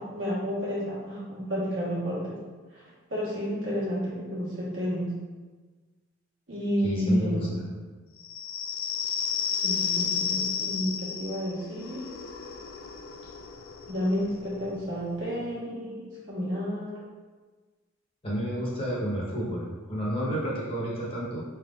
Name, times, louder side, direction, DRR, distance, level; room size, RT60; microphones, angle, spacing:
voice 1, 0.0-2.3 2.7-2.8 3.1-5.1 6.5-7.6 9.4-12.0 13.9-17.0, equal, 65° right, -7 dB, 1.3 m, -31 dB
voice 2, 6.8-7.5 18.2-21.4, equal, 30° left, -5 dB, 0.9 m, -30 dB
sound 1, 8.2-15.5, left 6 dB, 75° left, 0.4 m, -33 dB
4.3 x 3.6 x 2.4 m, 1.3 s
head